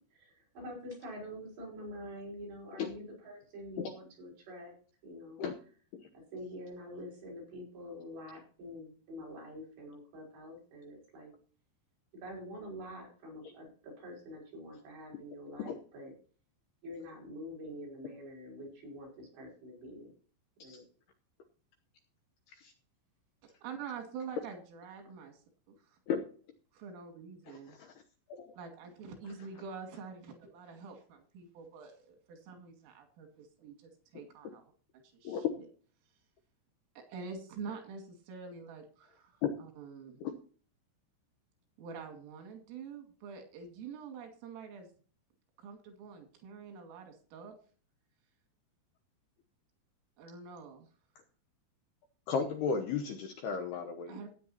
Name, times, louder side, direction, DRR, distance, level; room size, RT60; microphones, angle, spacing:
voice 1, 0.1-4.7 5.0-5.4 6.3-11.3 12.1-16.1 16.8-20.1 20.6-20.8, equal, 60° right, -2 dB, 7.8 m, -46 dB
voice 2, 23.4-25.4 25.7-26.0 26.7-27.8 28.6-34.6 34.9-35.7 37.0-40.2 41.8-44.9 45.6-47.6 50.2-50.9 54.1-54.3, right 5 dB, 90° right, 4 dB, 4.9 m, -46 dB
voice 3, 27.5-27.9 28.4-28.5 35.2-35.5 39.4-39.5 52.3-54.2, left 6 dB, 75° left, 5 dB, 2.5 m, -34 dB
15.5 x 9.7 x 2.9 m, 0.42 s
omnidirectional pair, 5.6 m